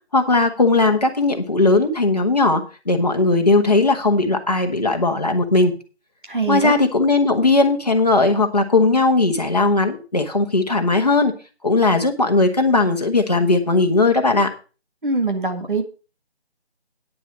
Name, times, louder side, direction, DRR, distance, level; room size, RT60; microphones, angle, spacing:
voice 1, 0.1-5.7 6.5-11.3 11.6-14.5, left 3 dB, 35° left, 4 dB, 1.5 m, -18 dB
voice 2, 6.3-6.8 15.0-15.8, right 3 dB, 50° right, 5 dB, 1.8 m, -22 dB
9.6 x 6.4 x 6.4 m, 0.35 s
figure-of-eight pair, 180°, 33 cm